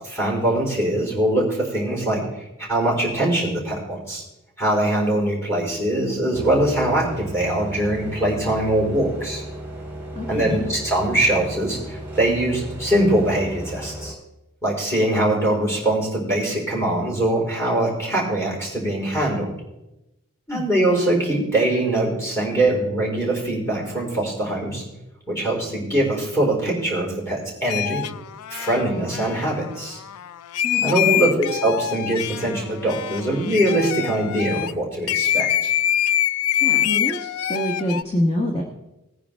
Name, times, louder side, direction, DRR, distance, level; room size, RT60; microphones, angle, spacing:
voice 1, 0.1-2.2 2.6-4.2 4.6-9.4 10.3-14.1 14.6-19.5 20.5-24.8 25.3-28.0 28.5-30.0 30.8-35.7, right 1 dB, 10° left, -3 dB, 4.4 m, -22 dB
sound 1, 6.3-14.1, right 1 dB, 10° right, 2.7 m, -35 dB
voice 2, 10.1-10.7 20.5-20.6 30.6-31.3 36.5-38.6, left 1 dB, 30° left, 0 dB, 1.3 m, -26 dB
sound 2, 27.7-34.7 35.1-38.0, left 11 dB, 70° left, 0.4 m, -24 dB
19.0 x 9.9 x 3.5 m, 0.95 s
head